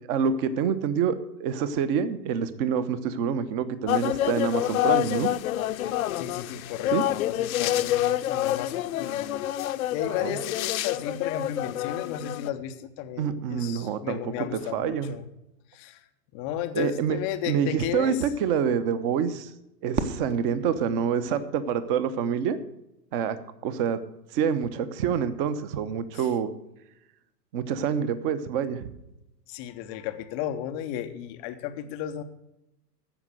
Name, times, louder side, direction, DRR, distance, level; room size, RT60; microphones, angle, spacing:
voice 1, 0.1-5.3 6.9-7.0 10.2-10.4 13.2-14.5 14.7-15.2 16.7-17.2 17.5-19.5 19.8-22.6 23.1-23.4 23.6-24.0 24.3-26.5 27.5-28.9, right 7 dB, 35° right, 13 dB, 0.9 m, -27 dB
sound 1, 3.9-12.5, left 13 dB, 55° left, 0.7 m, -27 dB
voice 2, 5.8-15.3 15.7-16.0 16.3-18.2 26.1-26.3 29.5-32.2, left 11 dB, 15° left, 7 dB, 0.5 m, -34 dB
Fireworks, 19.9-22.1, right 4 dB, 15° right, 0.7 m, -35 dB
14.0 x 5.2 x 8.0 m, 0.87 s
hypercardioid pair, 120°, 49 cm